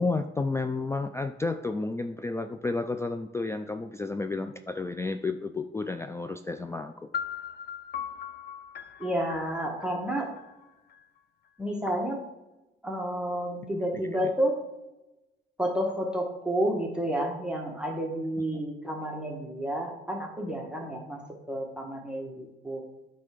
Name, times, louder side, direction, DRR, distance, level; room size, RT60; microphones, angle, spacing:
voice 1, 0.0-7.1 18.5-18.6, left 3 dB, 15° left, 8 dB, 0.3 m, -31 dB
sound 1, 7.1-11.0, left 8 dB, 55° left, 0.6 m, -39 dB
voice 2, 9.0-10.3 11.6-12.2 12.8-14.6 15.6-21.2 21.5-22.8, right 1 dB, 5° right, -1 dB, 1.2 m, -30 dB
7.9 x 3.3 x 5.1 m, 0.97 s
cardioid pair, 90°, 20 cm